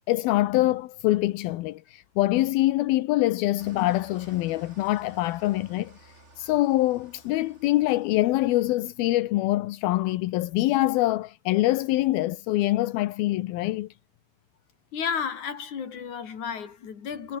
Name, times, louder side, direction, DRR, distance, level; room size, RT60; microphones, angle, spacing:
voice 1, 0.1-13.9, left 17 dB, 75° left, 2.4 m, -24 dB
Engine starting / Idling, 3.6-9.0, right 2 dB, 15° right, 4.2 m, -54 dB
voice 2, 14.9-17.4, left 7 dB, 45° left, 4.4 m, -32 dB
omnidirectional pair, 5.0 m